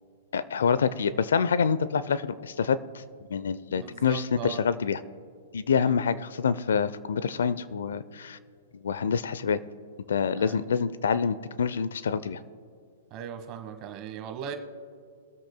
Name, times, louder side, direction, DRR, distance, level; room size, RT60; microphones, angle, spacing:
voice 1, 0.3-2.8 3.3-5.0 5.5-8.4 8.8-9.6 10.1-12.4, left 6 dB, 80° left, 15 dB, 0.5 m, -26 dB
voice 2, 3.7-4.6 5.9-6.0 10.4-10.5 13.1-14.6, right 8 dB, 40° right, 6 dB, 1.3 m, -38 dB
22.5 x 7.8 x 2.2 m, 2.3 s
hypercardioid pair, 130°, 0 cm